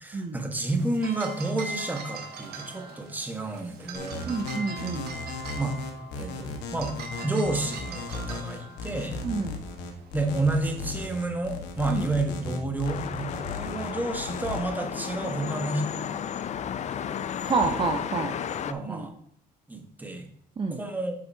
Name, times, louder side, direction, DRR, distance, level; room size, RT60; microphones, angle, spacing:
voice 1, 0.0-4.3 5.6-5.8 6.2-6.9 7.2-9.2 10.1-16.1 17.7-17.8 18.7-19.1 19.7-20.3 20.7-21.1, right 2 dB, 10° right, 4 dB, 1.4 m, -30 dB
sound 1, 0.7-11.1, right 2 dB, 70° right, 1.5 m, -42 dB
sound 2, 3.9-14.6, left 4 dB, 90° left, 1.5 m, -36 dB
voice 2, 4.2-5.1 9.2-9.6 11.9-12.1 17.4-18.3 18.9-19.1 20.6-20.8, right 4 dB, 30° right, 3 dB, 0.9 m, -28 dB
sound 3, 12.8-18.7, left 8 dB, 45° left, 0.5 m, -33 dB
9.3 x 6.7 x 2.8 m, 0.67 s
cardioid pair, 110°, 17 cm